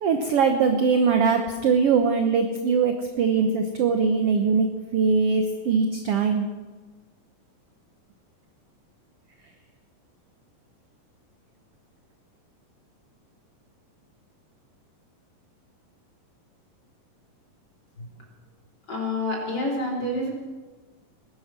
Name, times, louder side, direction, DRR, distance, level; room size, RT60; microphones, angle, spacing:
voice 1, 0.0-4.7 4.9-6.5, right 5 dB, 70° right, 5 dB, 1.4 m, -21 dB
voice 2, 18.9-20.3, left 1 dB, 30° left, -2 dB, 3.7 m, -28 dB
20.0 x 11.0 x 6.0 m, 1.3 s
omnidirectional pair, 4.1 m